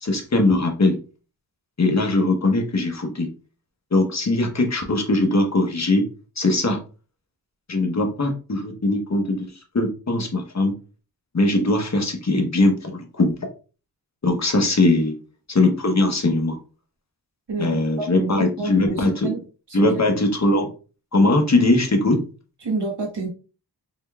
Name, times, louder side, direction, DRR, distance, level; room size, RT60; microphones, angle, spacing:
voice 1, 0.0-1.0 1.8-3.3 3.9-6.1 6.4-6.8 7.7-9.5 9.7-10.7 11.3-13.4 14.2-15.2 15.5-16.6 17.6-19.3 19.7-20.7 21.1-22.2, left 2 dB, 40° left, 3 dB, 1.0 m, -20 dB
voice 2, 17.5-19.4 19.7-20.0 22.6-23.3, right 3 dB, 85° right, -1 dB, 1.3 m, -29 dB
3.8 x 3.3 x 2.3 m, 0.35 s
wide cardioid pair, 55°, 40 cm